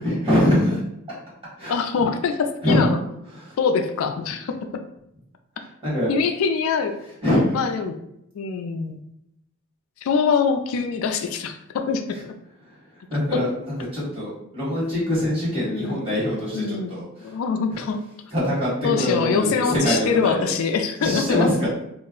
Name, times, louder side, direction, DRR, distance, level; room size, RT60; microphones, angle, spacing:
voice 1, 0.0-0.8 1.6-1.7 2.6-2.9 3.3-3.6 5.6-6.1 7.2-7.6 12.6-12.8 13.1-17.3 17.7-17.8 18.3-20.5 21.0-21.7, left 1 dB, 25° right, -8 dB, 1.4 m, -23 dB
voice 2, 1.7-3.0 3.6-4.5 6.1-7.0 7.5-8.0 8.3-9.0 10.0-12.3 13.3-13.4 15.7-16.0 16.5-18.0 18.8-21.5, left 5 dB, 75° left, 6 dB, 0.3 m, -24 dB
2.4 x 2.1 x 3.6 m, 0.80 s
head